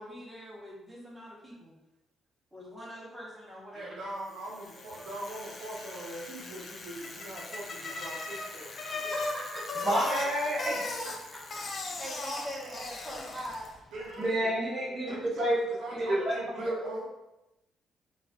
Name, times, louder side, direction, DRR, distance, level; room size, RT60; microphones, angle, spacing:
voice 1, 0.0-1.7 2.5-4.0 5.0-5.1 5.9-6.0 7.9-8.0 8.6-10.4 11.0-14.1 16.7-17.1, equal, 5° right, -6 dB, 1.0 m, -43 dB
voice 2, 3.7-8.8 9.0-9.1 9.5-9.6 10.0-10.1 13.9-14.5 15.0-17.1, right 1 dB, 90° right, -4 dB, 0.6 m, -42 dB
Bicycle, 4.4-13.8, left 3 dB, 45° left, 0.4 m, -39 dB
voice 3, 9.8-11.1 14.2-15.6 15.9-16.8, right 1 dB, 35° right, -5 dB, 1.2 m, -29 dB
3.1 x 2.3 x 2.3 m, 0.93 s
cardioid pair, 90°, 0 cm